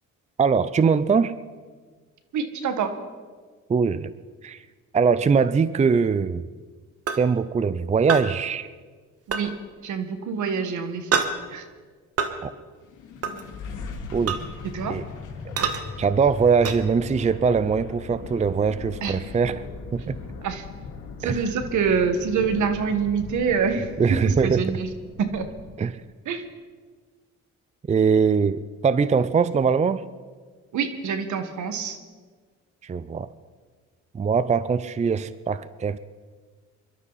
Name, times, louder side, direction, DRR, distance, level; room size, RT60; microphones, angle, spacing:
voice 1, 0.4-1.3 3.7-4.1 4.4-4.6 4.9-6.5 7.2-8.7 12.4-12.5 14.1-14.4 14.9-15.0 15.4-15.5 16.0-19.6 19.9-20.2 21.2-21.4 24.0-24.6 25.8-26.0 27.9-30.0 32.8-33.3 34.1-36.0, right 5 dB, 25° right, 15 dB, 0.5 m, -22 dB
voice 2, 2.3-3.0 9.3-11.6 14.6-15.0 19.0-19.3 20.4-20.6 21.2-24.9 25.2-25.5 26.2-26.4 30.7-32.0, right 6 dB, 75° right, 8 dB, 1.7 m, -26 dB
sound 1, 7.1-7.2 8.1-8.3 9.3-9.4 11.1-11.3 12.2-12.3 13.2-13.4 14.3-14.4 15.6-15.8 16.6-16.8, right 6 dB, 50° right, 1.6 m, -24 dB
sound 2, 12.8-25.9, left 4 dB, 80° left, 2.7 m, -39 dB
23.5 x 12.5 x 4.1 m, 1.5 s
cardioid pair, 90°, 30 cm